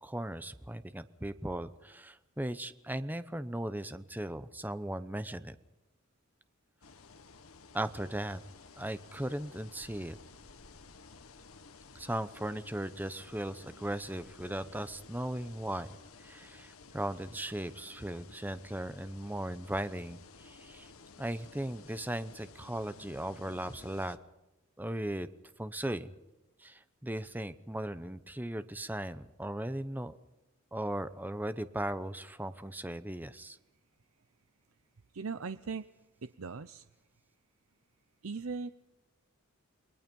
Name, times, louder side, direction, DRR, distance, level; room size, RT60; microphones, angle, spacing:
voice 1, 0.0-5.6 7.7-8.4 8.8-10.2 11.9-20.9 21.2-24.2 24.8-25.3 25.6-26.1 26.6-30.2 30.7-33.6, right 1 dB, 10° right, 12 dB, 0.8 m, -37 dB
sound 1, 6.8-24.2, left 4 dB, 85° left, 1.5 m, -54 dB
voice 2, 35.1-35.8 36.2-36.8 38.2-38.7, right 4 dB, 80° right, 12 dB, 0.7 m, -38 dB
28.5 x 21.0 x 5.4 m, 0.97 s
head